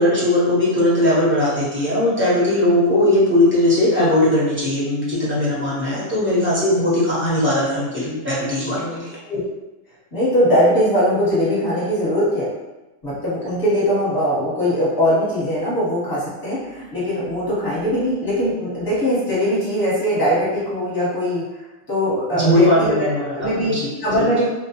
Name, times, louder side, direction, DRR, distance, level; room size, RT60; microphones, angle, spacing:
voice 1, 0.0-9.1 22.3-23.9 24.2-24.3, left 1 dB, 10° right, -9 dB, 0.7 m, -19 dB
voice 2, 10.1-12.5 13.0-21.4 21.9-23.0 23.3-23.7 24.0-24.4, equal, 20° left, -9 dB, 1.0 m, -20 dB
2.3 x 2.2 x 2.9 m, 1.1 s
omnidirectional pair, 1.4 m